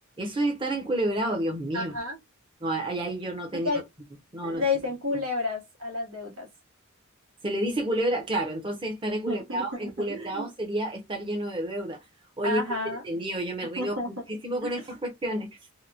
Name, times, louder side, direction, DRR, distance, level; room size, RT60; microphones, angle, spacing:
voice 1, 0.2-1.9 2.6-3.7 4.3-4.6 5.1-5.2 7.4-12.0 12.4-12.8 13.0-15.5, right 1 dB, 20° right, 0.7 m, -30 dB
voice 2, 1.7-2.2 3.5-3.9 4.4-6.5 9.2-10.5 12.4-13.0 13.8-14.2 14.6-14.7, left 3 dB, 75° right, 1.3 m, -31 dB
2.9 x 2.1 x 2.5 m
head